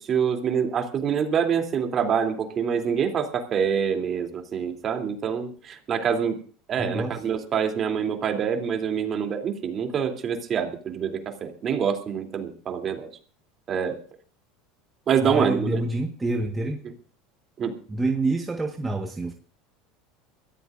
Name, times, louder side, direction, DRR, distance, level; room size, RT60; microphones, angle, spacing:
voice 1, 0.1-6.4 6.7-13.1 13.7-13.9 15.1-15.8 17.6-17.8, right 7 dB, 40° right, 4 dB, 3.1 m, -26 dB
voice 2, 6.8-7.2 15.2-16.8 17.9-19.3, right 2 dB, 15° right, 3 dB, 1.5 m, -27 dB
23.0 x 14.5 x 2.6 m, 0.40 s
hypercardioid pair, 95°, 0 cm